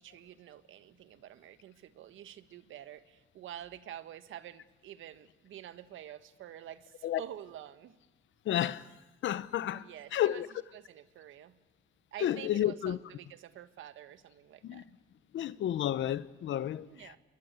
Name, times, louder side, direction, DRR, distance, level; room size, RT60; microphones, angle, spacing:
voice 1, 0.0-8.0 9.7-10.4 10.7-11.6 12.1-14.9 16.9-17.2, right 11 dB, 80° right, 1.6 m, -48 dB
voice 2, 8.4-8.9 9.2-10.5 12.2-13.0 14.6-14.8 15.3-17.2, left 11 dB, 70° left, 1.1 m, -31 dB
28.0 x 22.0 x 8.3 m
cardioid pair, 90°, 20 cm